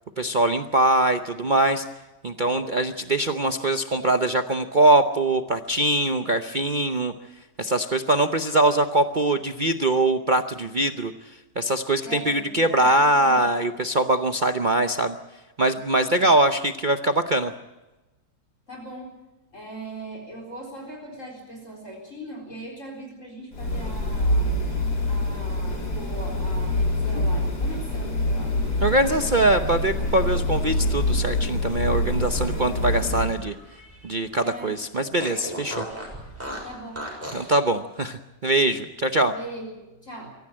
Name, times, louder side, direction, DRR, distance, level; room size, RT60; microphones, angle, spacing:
voice 1, 0.2-1.8 2.2-7.1 7.6-11.1 11.6-15.2 15.6-17.5 28.8-33.5 34.0-35.8 37.3-39.3, right 1 dB, 40° right, 7 dB, 0.7 m, -22 dB
voice 2, 12.0-13.6 16.2-16.3 18.7-19.1 19.5-24.5 25.1-29.8 34.4-34.8 36.6-37.1 39.3-40.3, right 1 dB, 45° left, 0 dB, 4.6 m, -39 dB
sound 1, 23.5-33.4, left 1 dB, 75° left, 3.8 m, -25 dB
Fart, 32.4-34.2 34.5-34.6 35.2-37.5, equal, 10° right, 6.4 m, -37 dB
24.0 x 14.5 x 8.8 m, 1.1 s
omnidirectional pair, 1.8 m